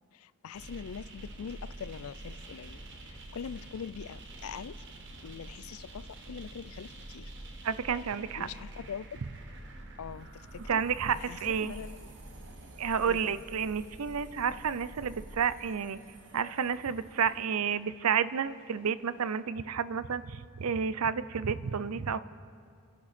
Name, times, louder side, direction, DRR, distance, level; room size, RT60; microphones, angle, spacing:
voice 1, 0.1-4.9 5.2-7.3 8.4-9.2 10.0-10.8 11.1-12.1 13.1-13.4, left 7 dB, 85° left, 17 dB, 0.4 m, -43 dB
sound 1, 0.5-19.4, right 1 dB, 55° right, 1.3 m, -47 dB
voice 2, 7.6-8.5 10.7-11.7 12.8-16.0 16.3-22.2, right 7 dB, 90° right, 15 dB, 0.6 m, -30 dB
29.5 x 10.5 x 4.3 m, 2.3 s
head